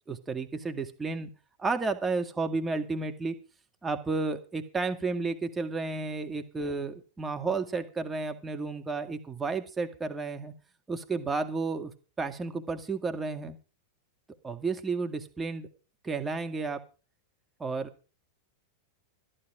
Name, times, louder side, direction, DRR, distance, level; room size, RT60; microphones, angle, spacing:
voice 1, 0.1-1.3 1.6-3.4 3.8-10.5 10.9-11.9 12.2-13.6 14.4-15.7 16.0-16.8 17.6-17.9, right 4 dB, 15° right, 5 dB, 1.9 m, -32 dB
14.0 x 12.0 x 5.0 m, 0.34 s
hypercardioid pair, 95°, 0 cm